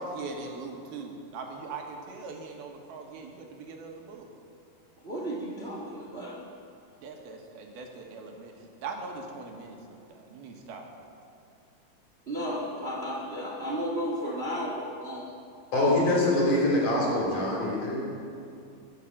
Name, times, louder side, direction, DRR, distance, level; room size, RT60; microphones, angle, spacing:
voice 1, 0.0-4.3 7.0-8.6 8.8-10.9, right 3 dB, 75° right, 2 dB, 3.4 m, -40 dB
voice 2, 5.0-6.4 12.3-15.3 15.8-16.2, equal, 45° right, -3 dB, 0.7 m, -34 dB
voice 3, 15.7-18.1, left 1 dB, 55° left, -3 dB, 5.3 m, -24 dB
21.0 x 8.4 x 7.3 m, 2.5 s
omnidirectional pair, 4.4 m